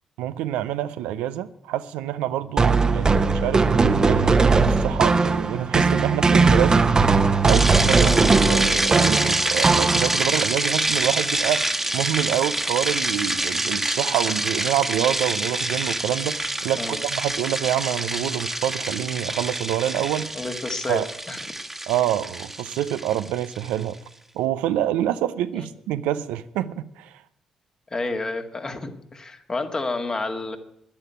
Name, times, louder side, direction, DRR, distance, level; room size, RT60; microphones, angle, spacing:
voice 1, 0.2-4.4 4.7-7.0 7.4-8.1 8.5-20.3 20.9-21.1 21.9-24.0 24.3-27.1, right 12 dB, 80° right, 0.6 m, -27 dB
sound 1, 2.6-10.4, right 4 dB, 35° right, 1.1 m, -19 dB
sound 2, 7.5-23.8, right 1 dB, 15° right, 1.5 m, -26 dB
voice 2, 20.3-21.0 21.3-21.4 25.6-25.7 27.9-30.6, left 3 dB, 35° left, 2.0 m, -30 dB
10.5 x 10.0 x 9.4 m
hypercardioid pair, 50°, 2 cm